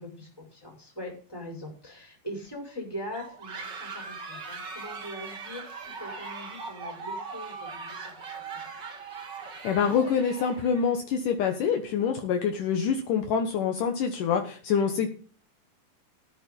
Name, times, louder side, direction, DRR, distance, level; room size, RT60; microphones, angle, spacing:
voice 1, 0.0-8.7, equal, 5° left, 1 dB, 5.4 m, -42 dB
sound 1, 3.1-11.0, right 4 dB, 35° right, 2.0 m, -40 dB
voice 2, 9.6-15.1, left 7 dB, 70° left, 4 dB, 2.7 m, -26 dB
14.5 x 8.4 x 5.4 m, 0.41 s
omnidirectional pair, 4.2 m